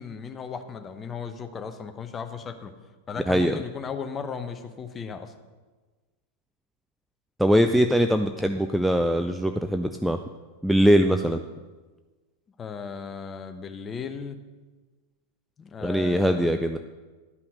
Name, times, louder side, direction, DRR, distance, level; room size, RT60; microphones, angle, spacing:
voice 1, 0.0-2.7 3.1-5.3 12.6-14.4 15.6-16.6, left 6 dB, 20° left, 8 dB, 0.9 m, -36 dB
voice 2, 3.3-3.6 7.4-10.2 10.6-11.4 15.8-16.8, equal, ahead, 6 dB, 0.4 m, -22 dB
11.0 x 5.6 x 6.6 m, 1.3 s
figure-of-eight pair, 90°, 0 cm